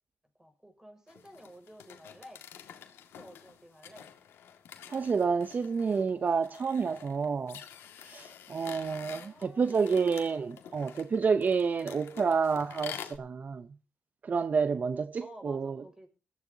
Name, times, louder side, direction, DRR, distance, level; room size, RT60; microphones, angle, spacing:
voice 1, 0.4-2.4 3.1-4.1 9.1-10.1 15.2-16.1, equal, 15° right, 5.9 m, -52 dB
sound 1, 1.1-13.2, left 9 dB, 90° left, 2.0 m, -48 dB
voice 2, 4.9-7.6 8.0-13.7 14.2-15.8, right 5 dB, 45° right, 0.7 m, -29 dB
21.0 x 15.0 x 2.8 m
cardioid pair, 75°, 4 cm